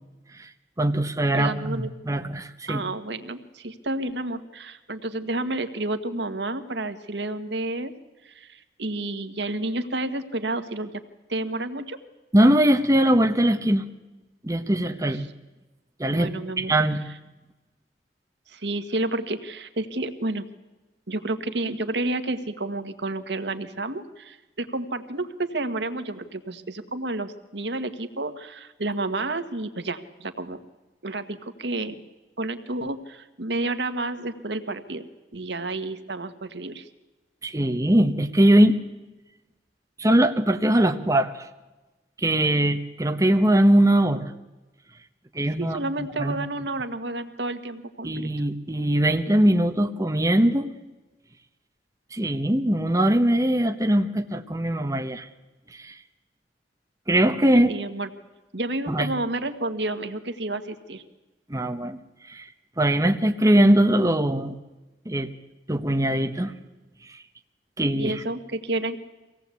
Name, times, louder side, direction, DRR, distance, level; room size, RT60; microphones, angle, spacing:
voice 1, 0.8-2.8 12.3-13.8 14.4-15.3 16.0-16.3 16.6-17.0 37.4-38.8 40.0-41.5 42.2-44.3 45.3-45.8 46.2-46.4 48.0-50.7 52.1-55.3 55.7-55.9 57.1-57.7 58.9-59.1 61.5-62.0 62.3-62.5 62.8-64.6 65.0-65.3 65.7-66.5 67.8-68.2, right 1 dB, 20° right, 5 dB, 1.1 m, -21 dB
voice 2, 1.3-1.9 2.7-7.9 8.2-10.9 11.3-12.0 16.1-16.7 18.5-20.4 21.1-30.6 31.0-32.0 32.4-35.0 35.3-36.9 45.6-48.3 57.7-58.1 58.5-61.0 67.9-69.0, right 2 dB, 75° right, 8 dB, 1.6 m, -30 dB
24.5 x 17.5 x 8.3 m, 1.1 s
head